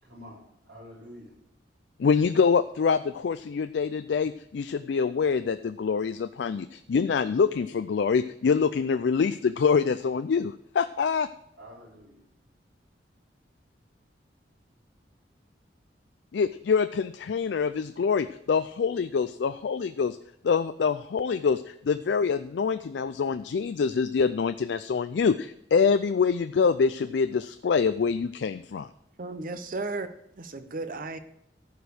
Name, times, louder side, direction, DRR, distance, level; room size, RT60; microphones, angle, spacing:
voice 1, 0.0-1.3 11.5-12.2, equal, 65° right, 5.1 m, -48 dB
voice 2, 2.0-11.3 16.3-20.2 20.4-28.9, left 5 dB, 70° left, 0.4 m, -25 dB
voice 3, 29.2-30.1 30.4-31.2, right 3 dB, 50° right, 0.8 m, -34 dB
14.0 x 5.2 x 6.2 m
head